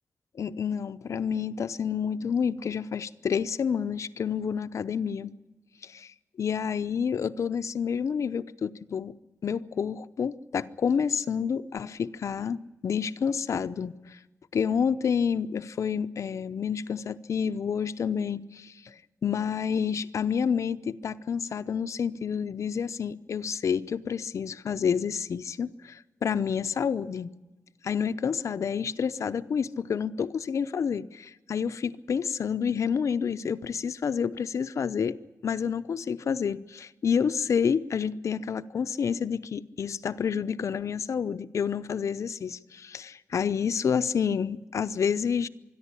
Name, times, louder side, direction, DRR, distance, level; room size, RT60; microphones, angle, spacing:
voice 1, 0.3-5.3 5.8-6.1 6.4-9.1 9.4-14.2 14.5-19.0 19.2-27.3 27.8-35.2 35.4-45.5, left 7 dB, 80° left, 0.7 m, -29 dB
25.5 x 11.0 x 9.8 m
wide cardioid pair, 130°, 5 cm